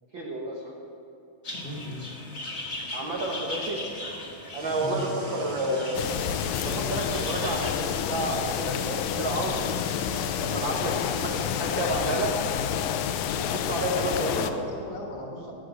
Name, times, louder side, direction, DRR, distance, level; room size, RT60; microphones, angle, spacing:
voice 1, 0.1-0.7 2.9-3.8 4.5-6.0 6.6-9.9 10.4-12.3 13.4-14.6, right 2 dB, 80° right, -2 dB, 1.0 m, -30 dB
sound 1, 1.4-7.7, left 1 dB, 35° left, 1.0 m, -38 dB
voice 2, 1.6-2.0 4.8-5.1 14.1-15.5, left 2 dB, 55° left, 0 dB, 2.1 m, -36 dB
sound 2, 4.5-11.5, right 1 dB, 55° right, 1.6 m, -42 dB
sound 3, 6.0-14.5, left 9 dB, 80° left, 2.2 m, -29 dB
17.0 x 6.5 x 8.1 m, 2.6 s
omnidirectional pair, 4.2 m